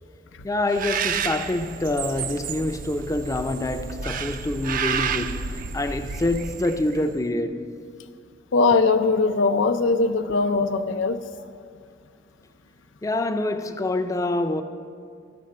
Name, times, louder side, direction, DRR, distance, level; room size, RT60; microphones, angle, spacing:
voice 1, 0.4-7.7 13.0-14.6, left 2 dB, 20° left, 0.4 m, -26 dB
Bird, 0.7-7.1, right 6 dB, 45° right, 0.4 m, -30 dB
voice 2, 8.5-11.2, left 3 dB, 85° left, 0.5 m, -20 dB
13.0 x 5.9 x 6.5 m
head